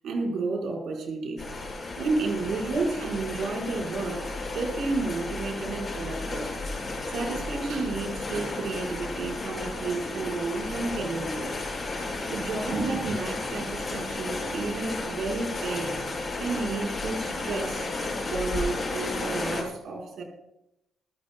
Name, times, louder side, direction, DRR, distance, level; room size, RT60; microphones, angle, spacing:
voice 1, 0.0-1.4 2.0-6.5 7.1-11.5 12.3-15.9 16.4-17.9 18.2-20.2, right 3 dB, 70° right, 4.8 m, -31 dB
sound 1, 1.4-19.6, left 2 dB, 30° left, 6.5 m, -33 dB
25.5 x 14.5 x 2.3 m
cardioid pair, 90°, 0 cm